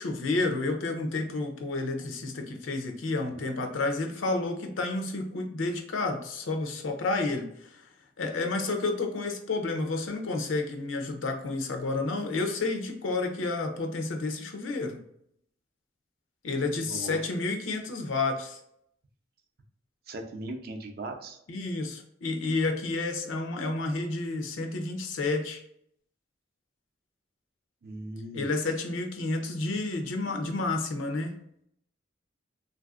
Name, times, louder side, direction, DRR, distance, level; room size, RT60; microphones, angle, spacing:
voice 1, 0.0-7.9 8.2-15.0 16.4-18.6 21.5-25.6 28.3-31.4, left 3 dB, 90° left, 4 dB, 0.6 m, -30 dB
voice 2, 16.9-17.2 20.1-21.4 27.8-28.5, right 1 dB, 50° right, 4 dB, 0.4 m, -38 dB
3.2 x 2.5 x 2.4 m, 0.72 s
head